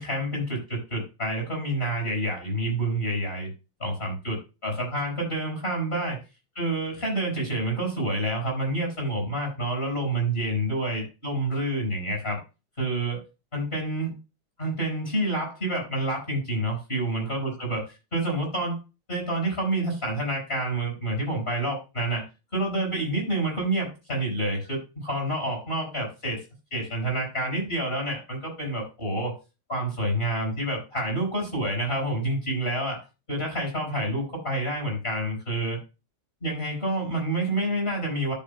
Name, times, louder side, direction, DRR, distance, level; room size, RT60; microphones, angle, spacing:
voice 1, 0.0-3.5 3.8-6.2 6.6-12.4 12.8-13.2 13.5-14.1 14.6-17.8 18.1-18.8 19.1-22.2 22.5-26.4 26.7-29.4 29.7-35.8 36.4-38.3, right 1 dB, 30° left, 0 dB, 5.6 m, -28 dB
13.0 x 7.4 x 2.2 m, 0.28 s
omnidirectional pair, 2.2 m